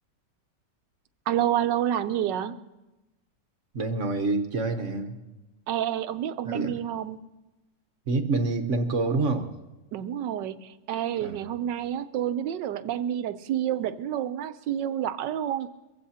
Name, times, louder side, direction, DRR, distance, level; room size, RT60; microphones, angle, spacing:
voice 1, 1.3-2.6 5.7-7.2 9.9-15.7, right 11 dB, 75° right, 11 dB, 1.3 m, -29 dB
voice 2, 3.7-5.2 6.4-6.8 8.1-9.5 11.2-11.5, right 3 dB, 50° right, 5 dB, 1.1 m, -27 dB
23.5 x 15.5 x 2.8 m, 1.0 s
omnidirectional pair, 2.0 m